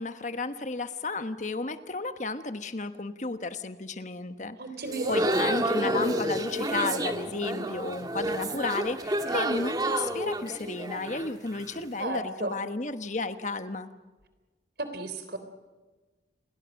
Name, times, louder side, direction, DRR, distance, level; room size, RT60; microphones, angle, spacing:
voice 1, 0.0-4.6 5.1-13.9, left 3 dB, 40° left, 10 dB, 1.2 m, -33 dB
voice 2, 4.6-5.5 12.0-12.7 14.8-15.4, right 2 dB, 55° right, 9 dB, 3.6 m, -34 dB
sound 1, 4.9-11.9, right 1 dB, 20° right, 1.5 m, -30 dB
30.0 x 22.0 x 6.4 m, 1.3 s
head